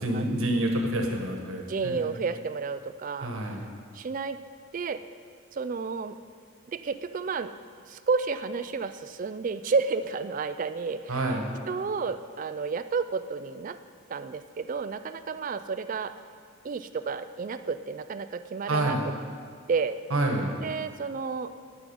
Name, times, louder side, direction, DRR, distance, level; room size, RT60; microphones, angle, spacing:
voice 1, 0.0-2.0 3.2-3.6 11.1-11.5 18.7-19.1 20.1-20.6, right 1 dB, 75° right, 2 dB, 1.3 m, -28 dB
voice 2, 1.7-3.3 3.9-4.4 4.7-5.0 5.5-6.2 6.7-7.5 7.9-11.3 11.7-13.8 14.1-16.1 16.6-19.0 19.7-20.0 20.6-21.5, right 5 dB, 40° right, 11 dB, 0.3 m, -31 dB
10.0 x 6.3 x 5.4 m, 2.2 s
head